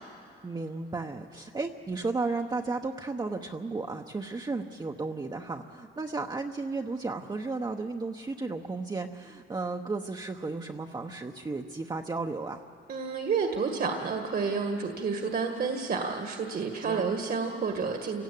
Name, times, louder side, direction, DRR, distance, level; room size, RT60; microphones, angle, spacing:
voice 1, 0.4-12.6 16.8-17.1, right 3 dB, 20° right, 2 dB, 1.0 m, -34 dB
voice 2, 12.9-18.2, right 5 dB, 50° right, 4 dB, 1.8 m, -30 dB
28.5 x 17.5 x 8.5 m, 2.6 s
cardioid pair, 90°, 20 cm